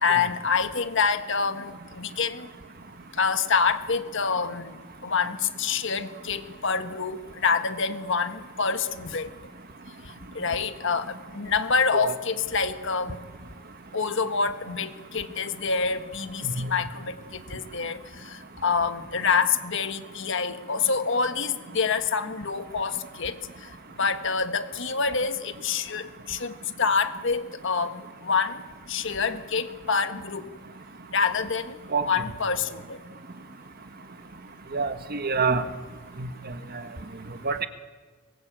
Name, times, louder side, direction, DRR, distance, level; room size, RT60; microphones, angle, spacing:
voice 1, 0.0-2.5 3.2-4.8 5.0-9.3 10.3-13.2 13.9-18.0 18.2-23.4 24.0-28.6 28.9-30.5 31.1-31.8 32.1-33.0, left 5 dB, 60° left, 9 dB, 1.5 m, -27 dB
voice 2, 34.7-35.6 36.2-36.3 37.4-37.7, right 4 dB, 50° right, 9 dB, 1.5 m, -26 dB
23.5 x 20.5 x 8.8 m, 1.4 s
head